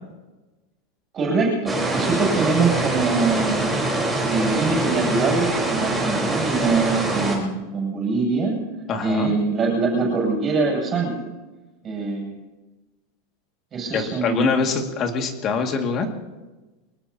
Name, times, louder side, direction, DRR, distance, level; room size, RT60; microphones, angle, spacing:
voice 1, 1.1-3.8 4.2-8.5 9.0-11.2 11.8-12.4 13.7-14.5, right 4 dB, 20° right, -1 dB, 7.8 m, -23 dB
sound 1, 1.7-7.4, right 2 dB, 5° right, 4.5 m, -24 dB
voice 2, 8.9-9.3 13.9-16.1, left 5 dB, 30° left, 3 dB, 2.3 m, -24 dB
24.5 x 20.0 x 2.9 m, 1.2 s
supercardioid pair, 160°, 0 cm